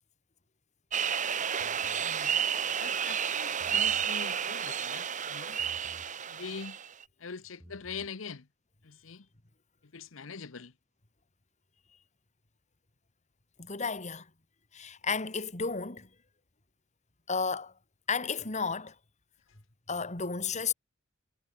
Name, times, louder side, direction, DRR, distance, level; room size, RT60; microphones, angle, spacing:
sound 1, 0.9-7.0, right 8 dB, 40° right, 1.1 m, -31 dB
sound 2, 1.6-2.1 3.5-4.1 5.6-6.1 7.5-8.1, equal, 10° right, 2.6 m, -54 dB
voice 1, 2.0-2.5 2.8-5.6 6.3-6.8 7.2-8.5 8.8-9.3 9.9-10.7, left 5 dB, 75° left, 0.9 m, -43 dB
voice 2, 13.6-14.3 14.7-16.1 17.3-17.7 18.1-19.0 19.9-20.7, left 5 dB, 35° left, 2.3 m, -32 dB
head